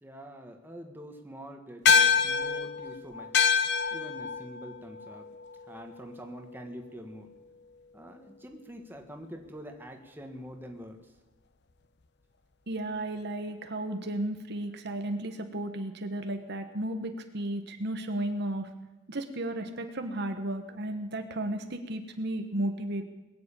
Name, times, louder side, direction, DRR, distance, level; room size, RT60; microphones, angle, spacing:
voice 1, 0.0-3.4 3.9-5.3 5.6-7.3 7.9-11.0, equal, 10° right, 3 dB, 1.5 m, -45 dB
sound 1, 1.9-6.5, left 6 dB, 55° left, 0.8 m, -27 dB
voice 2, 12.7-18.7 19.1-23.0, right 1 dB, 55° right, 7 dB, 1.3 m, -34 dB
21.0 x 7.8 x 8.9 m, 1.1 s
head